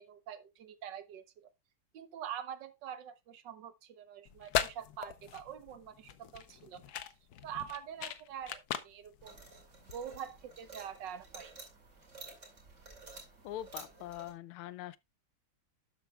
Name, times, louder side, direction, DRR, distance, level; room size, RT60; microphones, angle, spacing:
voice 1, 0.0-1.5 1.9-6.8 7.4-9.4 9.9-11.5, right 9 dB, 65° right, 1.4 m, -45 dB
sound 1, 4.3-10.3, left 10 dB, 65° left, 1.0 m, -39 dB
sound 2, 9.2-14.3, right 3 dB, 35° right, 2.9 m, -52 dB
voice 2, 13.4-15.0, left 12 dB, 85° left, 1.5 m, -43 dB
12.0 x 7.9 x 2.3 m
omnidirectional pair, 2.3 m